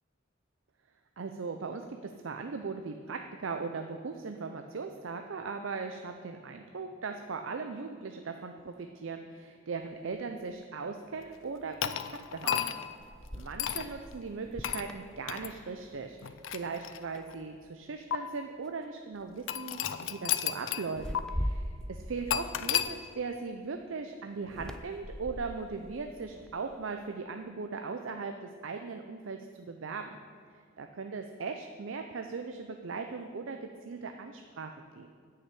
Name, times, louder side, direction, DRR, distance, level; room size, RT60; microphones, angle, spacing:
voice 1, 1.2-12.7 13.3-30.2 30.8-35.1, right 4 dB, 65° right, 5 dB, 0.5 m, -39 dB
sound 1, 10.1-10.2 12.4-16.0 16.4-16.7 17.1-17.8 18.6-18.8 19.2-19.5 20.9-23.5 24.4-26.8, equal, 5° left, 0.3 m, -41 dB
sound 2, 11.8-13.0 13.6-13.9 14.6-14.9 15.3-15.5 16.2-17.3 18.1-18.2 19.5-20.9 21.2-21.3 22.3-22.9, left 10 dB, 65° left, 0.5 m, -32 dB
9.9 x 5.7 x 8.5 m, 2.1 s
head